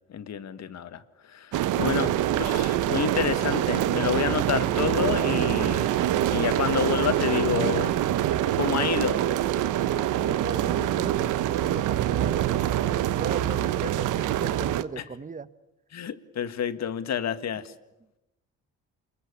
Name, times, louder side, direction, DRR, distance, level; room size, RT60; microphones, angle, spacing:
voice 1, 0.0-6.0 6.3-8.0 8.6-9.2 15.0-15.1 15.9-17.7, left 8 dB, 60° left, 1.8 m, -29 dB
sound 1, 1.5-14.8, right 12 dB, 85° right, 1.1 m, -25 dB
voice 2, 10.2-12.7 13.2-15.5, right 5 dB, 25° right, 1.1 m, -37 dB
28.0 x 22.0 x 8.3 m
cardioid pair, 90°, 30 cm